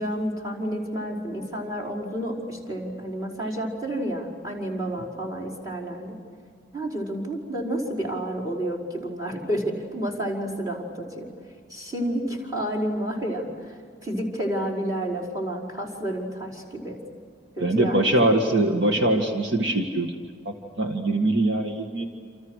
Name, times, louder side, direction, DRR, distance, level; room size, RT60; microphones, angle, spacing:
voice 1, 0.0-6.1 6.7-11.3 11.7-13.7 14.0-17.0 17.6-18.1, right 1 dB, 20° right, -1 dB, 5.1 m, -30 dB
voice 2, 17.6-20.2 20.5-22.1, right 1 dB, 65° right, 3 dB, 2.0 m, -23 dB
28.5 x 28.5 x 6.5 m, 2.1 s
head